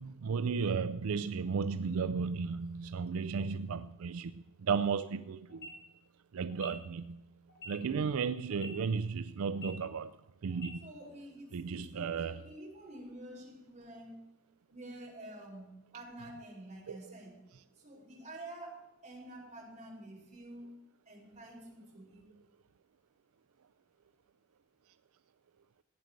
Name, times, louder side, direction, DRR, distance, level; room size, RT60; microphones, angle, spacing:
voice 1, 0.0-4.3 4.6-5.7 6.3-7.2 7.7-10.1 10.4-10.9 11.5-12.4 16.9-17.0, right 5 dB, 75° right, 0.4 m, -34 dB
sound 1, 5.5-5.7 6.5-6.7 7.5-7.7 8.5-8.7 9.5-9.7 10.5-10.7, equal, 50° left, 2.9 m, -46 dB
voice 2, 10.8-14.2 14.7-17.4 17.8-18.8 19.0-20.7 21.0-22.3, right 1 dB, 35° right, 4.9 m, -49 dB
14.5 x 9.3 x 6.5 m
head